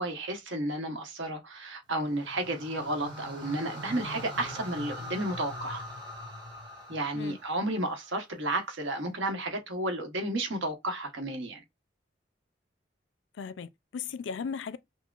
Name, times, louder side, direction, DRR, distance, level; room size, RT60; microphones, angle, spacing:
voice 1, 0.0-5.8 6.9-11.6, right 1 dB, 85° right, 1.1 m, -32 dB
sound 1, 1.9-8.3, equal, 25° right, 1.2 m, -42 dB
voice 2, 13.4-14.8, left 6 dB, 80° left, 0.4 m, -37 dB
5.5 x 2.1 x 2.4 m
head